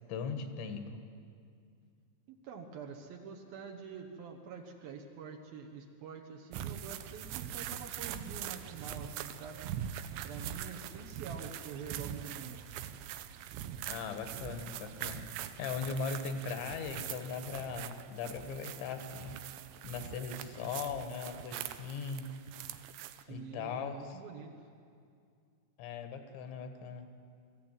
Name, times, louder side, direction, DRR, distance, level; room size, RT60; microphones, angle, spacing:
voice 1, 0.1-1.0 13.9-19.4 19.8-22.3 23.3-24.2 25.8-27.1, left 5 dB, 75° left, 6 dB, 3.6 m, -39 dB
voice 2, 2.3-9.6 10.2-12.6 20.6-20.8 23.3-24.5, right 5 dB, 65° right, 1 dB, 2.7 m, -46 dB
sound 1, 6.5-23.2, right 10 dB, 90° right, 3.2 m, -43 dB
23.0 x 14.5 x 9.1 m, 2.3 s
omnidirectional pair, 5.3 m